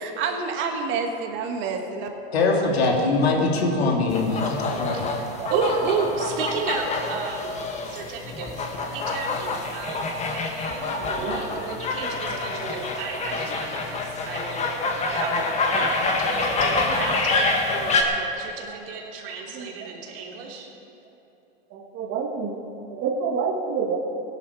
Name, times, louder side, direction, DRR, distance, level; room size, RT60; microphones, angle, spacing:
voice 1, 0.0-2.1 2.8-2.9 4.7-5.6 8.4-8.5 8.8-9.3 9.8-10.0 11.0-11.9 12.3-12.8 13.8-13.9 15.1-15.2 15.7-16.0 18.7-18.8 19.5-19.9 21.7-22.6 22.9-24.0, right 5 dB, 40° right, 4 dB, 1.8 m, -30 dB
voice 2, 2.3-5.0, left 3 dB, 80° left, 0 dB, 2.8 m, -22 dB
sound 1, 4.1-18.0, left 3 dB, 20° left, 1.7 m, -27 dB
voice 3, 4.9-14.7 14.9-20.7, right 4 dB, 65° right, -1 dB, 3.2 m, -33 dB
17.0 x 11.5 x 4.8 m, 3.0 s
hypercardioid pair, 125°, 31 cm